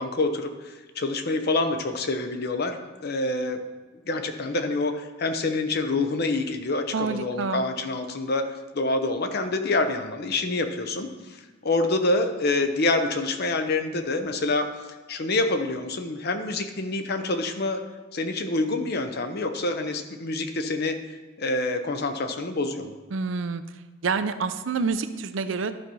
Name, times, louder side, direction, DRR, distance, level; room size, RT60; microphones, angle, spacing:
voice 1, 0.0-3.6 4.1-8.5 8.7-14.7 15.1-17.8 18.1-21.0 21.4-22.9, left 2 dB, 50° left, 7 dB, 0.8 m, -27 dB
voice 2, 6.9-7.6 23.1-23.6 24.0-25.8, right 4 dB, 65° right, 11 dB, 0.5 m, -27 dB
12.0 x 4.3 x 5.4 m, 1.3 s
head